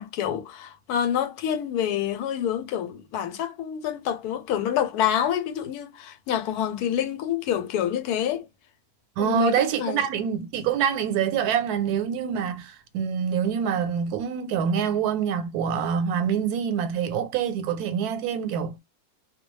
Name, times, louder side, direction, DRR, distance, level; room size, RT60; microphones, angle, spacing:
voice 1, 0.0-8.5 9.2-10.1, left 10 dB, 90° left, 1.1 m, -27 dB
voice 2, 9.2-18.8, right 8 dB, 90° right, 1.1 m, -26 dB
2.3 x 2.2 x 3.0 m
omnidirectional pair, 1.6 m